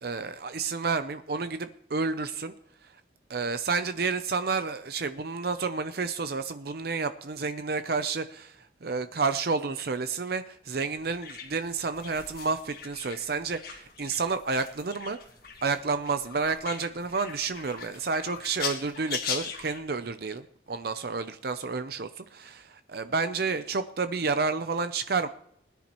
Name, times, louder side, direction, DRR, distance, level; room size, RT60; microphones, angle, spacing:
voice 1, 0.0-2.5 2.8-2.9 3.3-15.2 15.6-25.3, right 4 dB, 55° right, 10 dB, 0.6 m, -30 dB
sound 1, 10.7-19.8, left 7 dB, 55° left, 1.8 m, -40 dB
20.5 x 10.5 x 3.1 m, 0.68 s
head